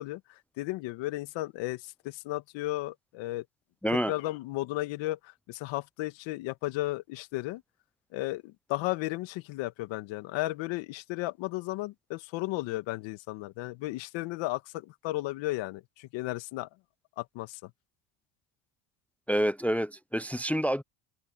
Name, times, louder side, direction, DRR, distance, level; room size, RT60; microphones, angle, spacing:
voice 1, 0.0-3.5 3.9-7.6 8.1-16.7 17.2-17.7, left 18 dB, 75° left, 2.1 m, -34 dB
voice 2, 19.3-20.8, equal, 5° left, 0.7 m, -28 dB
open air
supercardioid pair, 100°, 45 cm